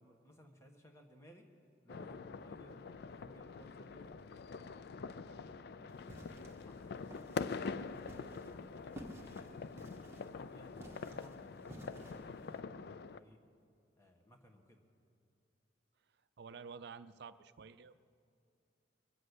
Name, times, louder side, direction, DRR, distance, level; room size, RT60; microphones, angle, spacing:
voice 1, 0.0-1.4 1.8-6.0 6.4-9.9 10.3-13.4 14.0-14.8, equal, 15° left, 3 dB, 1.3 m, -61 dB
sound 1, 1.9-13.2, left 5 dB, 55° left, 0.4 m, -45 dB
sound 2, 5.9-12.6, right 1 dB, 15° right, 1.4 m, -55 dB
voice 2, 16.4-18.0, right 5 dB, 60° right, 12 dB, 0.5 m, -50 dB
22.5 x 7.6 x 8.1 m, 2.4 s
head